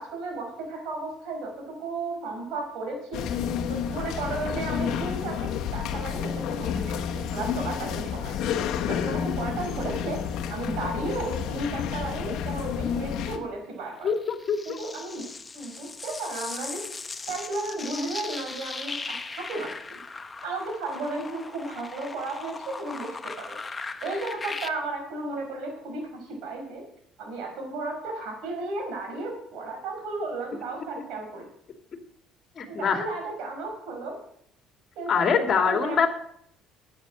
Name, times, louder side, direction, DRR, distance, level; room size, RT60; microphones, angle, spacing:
voice 1, 0.0-3.3 3.7-8.4 8.8-10.2 10.5-14.1 14.6-15.2 15.5-16.8 17.3-19.2 19.5-20.0 20.4-23.1 23.4-23.6 24.0-26.8 27.2-31.5 32.7-34.2 35.0-36.1, right 2 dB, 70° right, 1 dB, 5.6 m, -34 dB
sound 1, 3.1-13.4, left 8 dB, 70° left, 1.1 m, -30 dB
voice 2, 14.0-14.8 32.6-33.1 35.1-36.1, left 6 dB, 45° left, 4 dB, 2.3 m, -24 dB
sound 2, 14.1-24.7, left 4 dB, 25° left, 0.8 m, -38 dB
9.9 x 8.9 x 6.4 m, 0.69 s
supercardioid pair, 80°, 0 cm